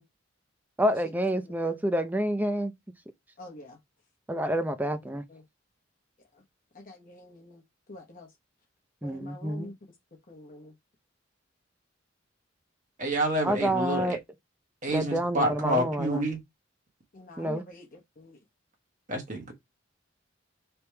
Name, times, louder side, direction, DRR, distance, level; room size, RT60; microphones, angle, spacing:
voice 1, 0.8-2.7 4.3-5.2 9.0-9.7 13.4-14.2 14.9-16.3 17.4-17.6, equal, 10° right, 0.5 m, -28 dB
voice 2, 3.4-3.8 5.3-5.4 6.3-6.4 6.7-7.6 7.9-8.3 9.0-9.8 10.3-10.7 17.1-18.4, left 1 dB, 45° left, 1.0 m, -46 dB
voice 3, 13.0-14.2 14.8-16.4 19.1-19.5, right 1 dB, 40° right, 1.2 m, -28 dB
3.4 x 2.9 x 4.4 m
head